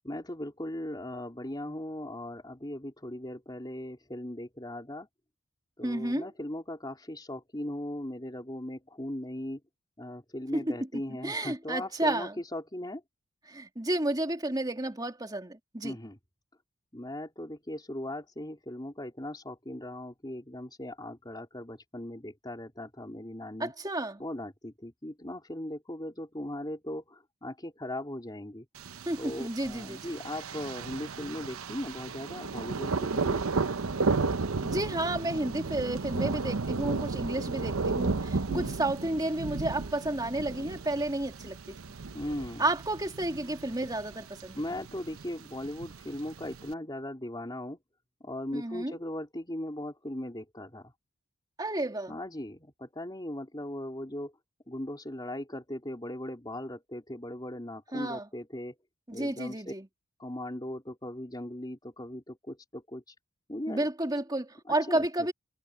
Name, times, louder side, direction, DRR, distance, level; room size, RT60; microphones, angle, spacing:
voice 1, 0.0-5.1 5.8-9.6 10.0-13.0 15.8-16.2 16.9-23.7 24.2-28.6 29.2-33.4 38.5-38.7 42.1-42.7 44.5-47.8 48.2-50.9 52.1-54.3 54.7-58.7 59.1-59.7 60.2-63.1 63.5-63.9 64.7-65.1, left 1 dB, 20° left, 3.4 m, -38 dB
voice 2, 5.8-6.3 10.5-12.4 13.5-16.0 23.6-24.2 29.1-30.1 34.6-41.8 42.6-44.6 48.5-49.0 51.6-52.2 57.9-58.3 59.1-59.9 63.7-65.3, right 1 dB, 20° right, 2.7 m, -31 dB
Thunder, 28.8-46.7, right 4 dB, 85° right, 0.8 m, -34 dB
head